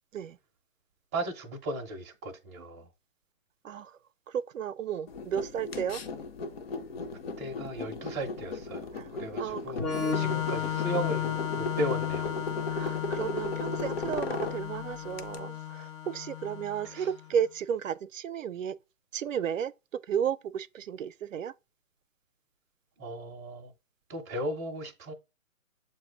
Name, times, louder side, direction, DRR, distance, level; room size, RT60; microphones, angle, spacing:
voice 1, 1.1-2.9 7.4-8.9 9.2-12.3 12.8-13.0 16.8-17.1 23.0-23.7 24.1-25.1, right 1 dB, 15° right, 0.5 m, -36 dB
voice 2, 3.6-4.0 4.3-6.0 8.9-9.1 9.4-9.6 9.9-10.5 12.7-18.8 19.1-19.7 20.1-21.5, right 8 dB, 70° right, 0.5 m, -33 dB
sound 1, 5.1-15.4, left 3 dB, 45° left, 1.0 m, -37 dB
Organ, 9.8-17.3, left 9 dB, 25° left, 0.7 m, -34 dB
7.4 x 2.6 x 4.8 m
hypercardioid pair, 140°, 41 cm